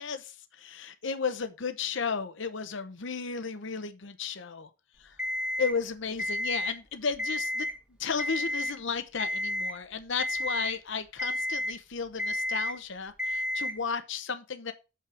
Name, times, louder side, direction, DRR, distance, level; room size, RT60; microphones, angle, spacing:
voice 1, 0.0-4.7 5.0-5.2 5.6-7.7 8.0-14.7, left 5 dB, 65° left, 0.8 m, -34 dB
Alarm, 5.2-5.7 6.2-6.7 7.1-7.7 8.2-8.7 9.2-9.7 10.2-10.7 11.2-11.7 12.2-12.7 13.2-13.7, left 1 dB, 5° right, 1.6 m, -31 dB
6.6 x 5.7 x 4.8 m
head